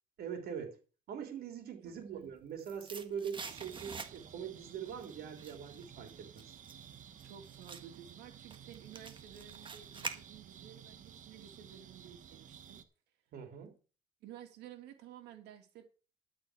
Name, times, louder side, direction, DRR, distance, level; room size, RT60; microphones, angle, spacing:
voice 1, 0.2-0.8 1.1-6.4 13.3-13.7, right 7 dB, 65° right, 5 dB, 3.7 m, -42 dB
voice 2, 1.8-2.3 3.5-3.7 7.2-12.8 14.2-15.8, right 10 dB, 85° right, 5 dB, 2.7 m, -53 dB
sound 1, 2.1-4.5 4.9-10.7 11.0-11.1, right 5 dB, 30° right, 1.6 m, -47 dB
sound 2, 3.4-12.8, right 9 dB, 50° right, 1.4 m, -54 dB
12.5 x 5.0 x 8.0 m, 0.37 s
cardioid pair, 110°, 17 cm